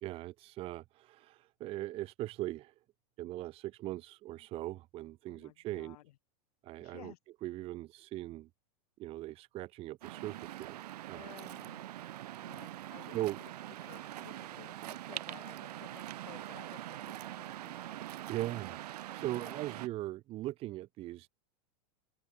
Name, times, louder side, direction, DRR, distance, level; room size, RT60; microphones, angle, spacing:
voice 1, 0.0-2.7 3.2-6.0 6.6-7.1 7.4-8.5 9.0-10.7 11.1-11.3 12.0-12.2 13.1-13.4 18.3-18.8 19.1-21.3, right 16 dB, 30° right, 0.7 m, -40 dB
voice 2, 5.2-6.1 6.8-7.2 11.1-11.9 12.4-13.5 13.8-18.0 19.3-19.6, left 15 dB, 75° left, 2.8 m, -56 dB
Waves surf, 10.0-19.9, right 13 dB, 85° right, 1.7 m, -44 dB
open air
supercardioid pair, 150°, 20 cm